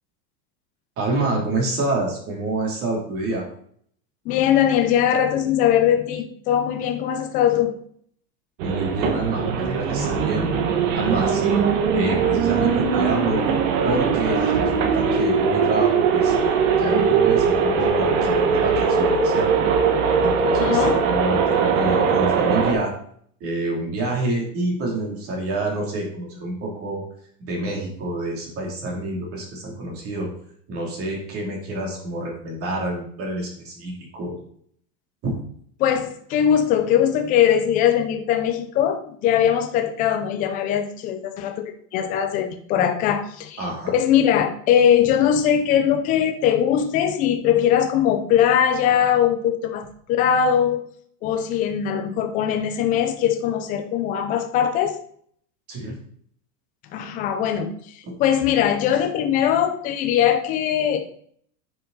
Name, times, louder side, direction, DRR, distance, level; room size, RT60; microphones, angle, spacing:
voice 1, 1.0-3.5 8.6-10.5 11.0-11.7 11.9-13.4 13.8-16.3 16.8-19.7 20.2-22.9 23.4-27.0 27.4-30.3 30.7-34.4 35.2-35.3 43.6-43.9 55.7-55.9, right 2 dB, 30° right, -1 dB, 2.9 m, -27 dB
voice 2, 4.3-7.8 20.6-21.0 35.8-50.8 51.2-55.0 56.9-61.0, left 9 dB, 20° left, 6 dB, 0.5 m, -21 dB
sound 1, 8.6-22.7, right 6 dB, 55° right, 1.6 m, -20 dB
9.5 x 6.9 x 4.0 m, 0.62 s
supercardioid pair, 175°, 46 cm